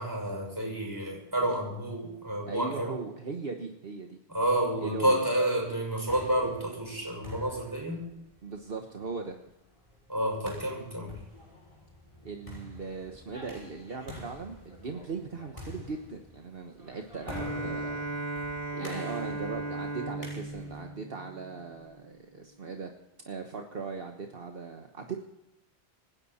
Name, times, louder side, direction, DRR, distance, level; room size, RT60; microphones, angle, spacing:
voice 1, 0.0-3.0 4.3-8.1 10.1-11.2, right 1 dB, 20° right, 0 dB, 6.3 m, -30 dB
voice 2, 2.5-4.2 4.8-5.2 8.4-9.4 12.2-18.1 18.7-22.9 23.2-25.2, right 4 dB, 60° right, 3 dB, 1.4 m, -39 dB
sound 1, 6.1-20.9, left 1 dB, 30° left, 6.1 m, -47 dB
Bowed string instrument, 17.3-22.0, right 2 dB, 15° left, 2.3 m, -36 dB
26.5 x 10.5 x 4.2 m, 0.89 s
omnidirectional pair, 1.1 m